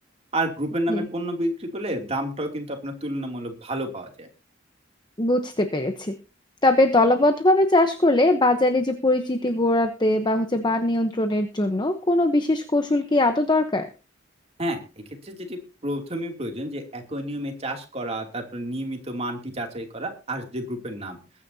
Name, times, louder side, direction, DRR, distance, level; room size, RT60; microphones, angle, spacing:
voice 1, 0.3-4.3 14.6-21.2, right 1 dB, 35° right, 3 dB, 2.8 m, -30 dB
voice 2, 5.2-6.1 6.6-13.9, left 1 dB, 25° left, 7 dB, 1.0 m, -21 dB
21.5 x 9.9 x 2.8 m, 0.32 s
head